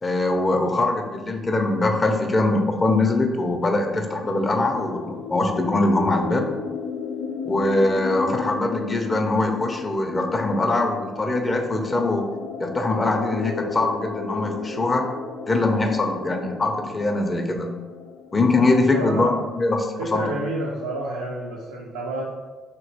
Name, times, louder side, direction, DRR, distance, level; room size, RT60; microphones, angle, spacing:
voice 1, 0.0-6.5 7.5-12.2 12.6-15.1 15.5-17.7 18.3-20.2, left 2 dB, 30° left, 4 dB, 0.5 m, -22 dB
sound 1, 3.7-19.3, left 4 dB, 85° left, 0.3 m, -35 dB
voice 2, 18.9-19.4 20.0-22.2, right 2 dB, 90° right, -4 dB, 0.4 m, -29 dB
2.9 x 2.9 x 2.8 m, 1.3 s
hypercardioid pair, 50°, 0 cm